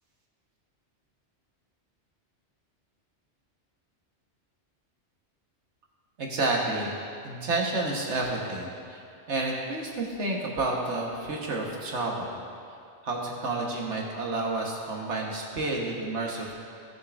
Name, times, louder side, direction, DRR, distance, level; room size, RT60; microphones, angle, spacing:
voice 1, 6.2-6.9 7.2-9.0 9.3-12.4 13.0-16.5, right 2 dB, 85° right, -2 dB, 1.6 m, -30 dB
17.5 x 6.6 x 2.6 m, 2.5 s
omnidirectional pair, 1.2 m